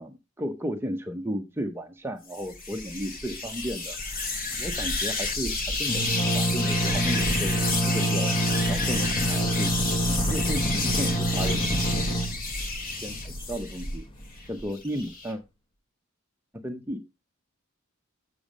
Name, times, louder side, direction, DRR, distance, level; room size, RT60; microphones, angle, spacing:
voice 1, 0.0-4.0 4.6-8.4 8.7-9.7 10.1-11.8 13.0-13.2 13.5-14.1 14.5-15.4 16.6-17.1, equal, 10° right, 4 dB, 0.7 m, -34 dB
sound 1, 2.3-13.9 14.4-15.3, left 3 dB, 40° left, 2.2 m, -31 dB
sound 2, 2.8-3.3 3.6-3.7 4.0-14.7, right 1 dB, 25° left, 1.1 m, -28 dB
7.2 x 6.9 x 5.1 m, 0.25 s
head